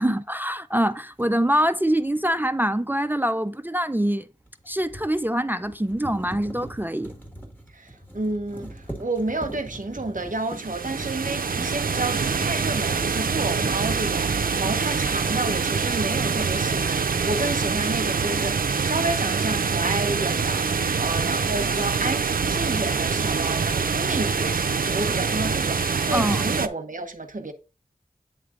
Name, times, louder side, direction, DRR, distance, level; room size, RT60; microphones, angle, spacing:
voice 1, 0.0-4.3 4.7-7.1 14.3-14.4 26.1-26.4, right 1 dB, 15° right, 0.3 m, -24 dB
sound 1, 1.2-1.3 4.4-13.2 13.5-14.3, right 1 dB, 15° left, 1.4 m, -41 dB
voice 2, 7.7-27.5, right 2 dB, 65° right, 0.9 m, -30 dB
sound 2, 10.4-26.7, right 5 dB, 85° right, 0.4 m, -25 dB
8.7 x 3.3 x 3.6 m
wide cardioid pair, 45°, 14 cm